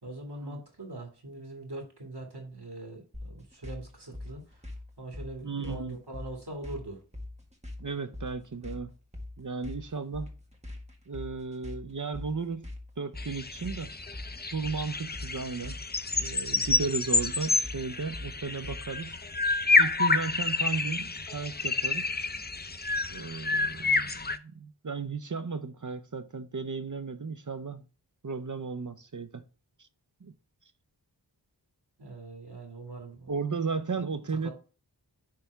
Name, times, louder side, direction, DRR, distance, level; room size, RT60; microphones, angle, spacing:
voice 1, 0.0-4.6 5.0-7.0 32.0-33.3 34.4-34.5, right 2 dB, 65° right, 2.3 m, -42 dB
sound 1, 3.1-19.0, left 1 dB, 15° right, 1.6 m, -43 dB
voice 2, 5.4-6.0 7.8-8.9 9.4-10.3 11.1-12.7 13.0-13.9 14.5-15.8 16.2-19.2 19.8-22.1 23.1-27.8 28.2-29.4 30.2-30.3 33.3-34.5, right 4 dB, 45° right, 0.6 m, -35 dB
sound 2, 13.2-24.4, left 3 dB, 25° left, 0.5 m, -29 dB
10.0 x 3.4 x 3.4 m
wide cardioid pair, 40°, 43 cm